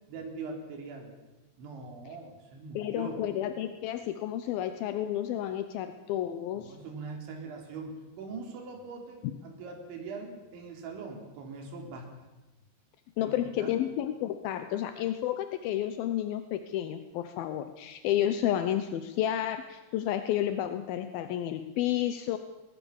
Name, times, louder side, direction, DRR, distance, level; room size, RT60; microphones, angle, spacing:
voice 1, 0.1-1.1 1.6-3.2 6.5-12.3 13.2-13.7, right 4 dB, 80° right, 2 dB, 6.0 m, -42 dB
voice 2, 2.8-6.8 13.2-22.4, left 11 dB, 75° left, 9 dB, 2.3 m, -31 dB
21.5 x 19.5 x 7.2 m, 1.1 s
omnidirectional pair, 5.3 m